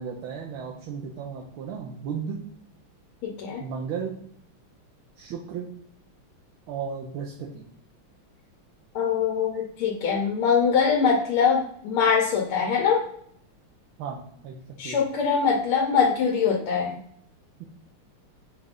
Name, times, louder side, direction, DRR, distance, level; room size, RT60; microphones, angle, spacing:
voice 1, 0.0-2.4 3.6-4.2 5.2-5.7 6.7-7.6 14.0-15.0 17.6-17.7, right 6 dB, 80° right, -2 dB, 1.5 m, -34 dB
voice 2, 3.2-3.6 8.9-13.0 14.8-17.0, left 6 dB, 85° left, -1 dB, 1.6 m, -23 dB
5.4 x 2.4 x 3.5 m, 0.66 s
omnidirectional pair, 2.3 m